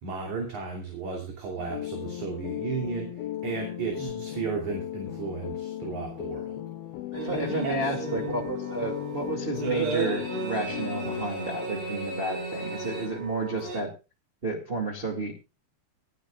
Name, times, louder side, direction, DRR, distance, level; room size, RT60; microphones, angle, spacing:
voice 1, 0.0-6.6 7.3-7.9, right 4 dB, 50° right, 1 dB, 4.2 m, -34 dB
sound 1, 1.6-11.2, left 13 dB, 80° left, 2.7 m, -36 dB
voice 2, 7.1-13.9 14.4-15.3, right 2 dB, 20° right, 0 dB, 1.7 m, -32 dB
sound 2, 7.1-13.8, right 4 dB, 85° right, 4.8 m, -34 dB
26.0 x 9.2 x 2.4 m, 0.29 s
omnidirectional pair, 4.6 m